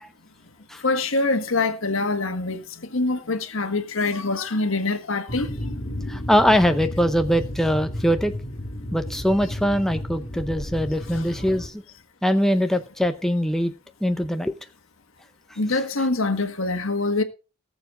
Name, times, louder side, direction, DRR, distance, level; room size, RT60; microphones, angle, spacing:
voice 1, 0.8-2.6 2.9-5.5 15.6-17.2, left 3 dB, 75° left, 1.5 m, -24 dB
sound 1, 5.3-11.7, left 1 dB, 50° left, 2.2 m, -33 dB
voice 2, 6.1-8.3 8.9-11.7 12.2-13.7 14.0-14.6, equal, ahead, 0.6 m, -22 dB
19.0 x 7.1 x 3.8 m
head